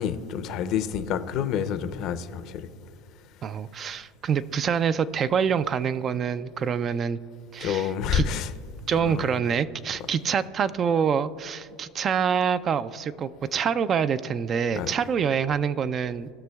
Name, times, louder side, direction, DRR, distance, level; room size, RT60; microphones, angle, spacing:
voice 1, 0.0-2.7 7.6-8.5 9.1-9.3 14.7-14.9, left 8 dB, 55° left, 0.6 m, -28 dB
voice 2, 3.4-7.2 7.5-8.2 8.9-16.3, right 7 dB, 35° right, 0.3 m, -26 dB
17.5 x 6.0 x 2.3 m
supercardioid pair, 105°, 0 cm